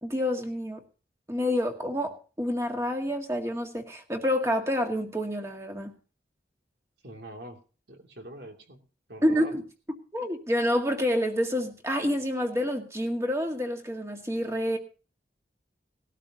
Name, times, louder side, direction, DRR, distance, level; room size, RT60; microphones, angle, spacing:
voice 1, 0.0-0.8 1.3-5.9 9.2-9.6 10.1-14.8, equal, 15° right, 1.9 m, -28 dB
voice 2, 7.0-7.6 7.9-8.8 9.1-9.5, right 1 dB, 70° right, 2.6 m, -43 dB
19.0 x 12.5 x 2.8 m
head